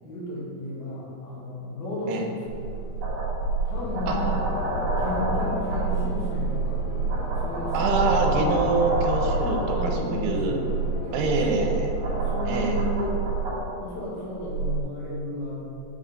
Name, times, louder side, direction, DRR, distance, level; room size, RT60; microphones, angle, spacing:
voice 1, 0.0-3.2 3.6-4.3 5.0-6.8 7.4-8.4 8.8-9.0 9.7-10.7 11.0-11.7 12.2-13.2 13.8-15.6, left 1 dB, 65° left, -7 dB, 3.2 m, -33 dB
sound 1, 2.5-13.6 14.4-14.8, right 3 dB, 65° right, 1.8 m, -27 dB
sound 2, 3.7-12.4, left 2 dB, 85° left, 3.3 m, -38 dB
voice 2, 7.7-10.6 11.1-12.0 12.5-12.8, right 3 dB, 85° right, 2 dB, 2.7 m, -25 dB
7.2 x 3.3 x 5.2 m, 2.7 s
omnidirectional pair, 4.8 m